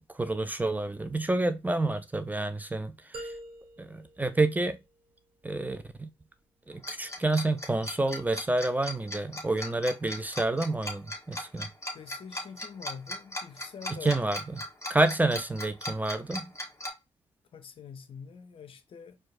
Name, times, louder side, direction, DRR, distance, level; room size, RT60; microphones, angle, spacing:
voice 1, 0.1-3.3 3.8-4.8 5.4-6.1 6.7-11.7 13.9-14.4 14.9-16.5, right 2 dB, 15° right, 0.5 m, -29 dB
sound 1, 3.1-5.2, right 1 dB, 50° right, 1.4 m, -45 dB
Tick-tock, 6.8-16.9, left 1 dB, 25° left, 1.4 m, -37 dB
voice 2, 11.9-14.3 17.5-19.2, left 6 dB, 50° left, 0.6 m, -45 dB
4.4 x 2.3 x 2.6 m
hypercardioid pair, 45°, 12 cm